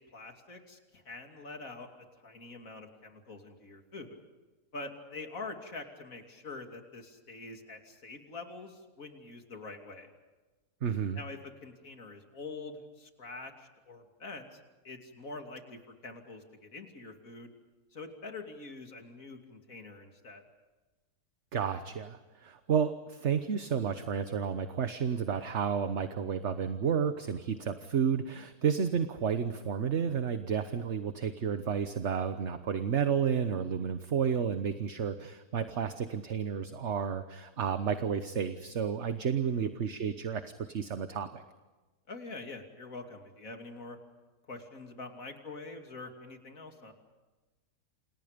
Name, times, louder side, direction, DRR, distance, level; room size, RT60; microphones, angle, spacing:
voice 1, 0.0-4.2 4.7-10.1 11.1-17.5 17.9-20.4 39.4-39.7 42.1-44.0 44.5-46.9, left 3 dB, 60° left, 4 dB, 3.3 m, -45 dB
voice 2, 10.8-11.2 21.5-41.4, right 7 dB, 50° right, 9 dB, 1.3 m, -31 dB
29.0 x 28.0 x 5.2 m, 1.2 s
omnidirectional pair, 1.6 m